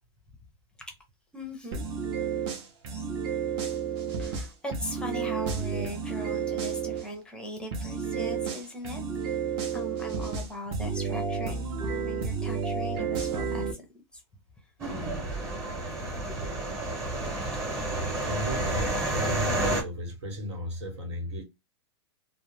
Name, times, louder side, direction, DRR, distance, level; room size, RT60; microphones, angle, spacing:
voice 1, 1.3-1.9 2.9-3.0 4.2-9.4 9.7-13.8 14.1-14.2 15.5-16.0 16.2-16.3, equal, 5° left, 0.6 m, -39 dB
sound 1, 1.7-7.1 7.7-13.7, right 6 dB, 35° right, 0.6 m, -31 dB
sound 2, 14.8-19.8, right 1 dB, 20° right, 1.0 m, -30 dB
voice 2, 18.2-21.4, equal, 85° right, 1.2 m, -35 dB
2.3 x 2.1 x 3.2 m
supercardioid pair, 150°, 14 cm